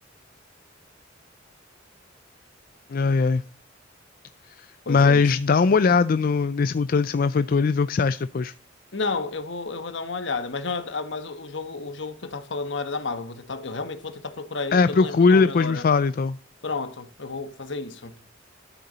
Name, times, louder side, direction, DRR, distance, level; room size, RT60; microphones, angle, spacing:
voice 1, 2.9-3.4 4.6-8.5 14.7-16.4, left 4 dB, 45° left, 0.4 m, -20 dB
voice 2, 4.9-5.2 8.9-15.8 16.6-18.2, left 3 dB, 65° left, 1.3 m, -31 dB
12.5 x 6.7 x 4.1 m
head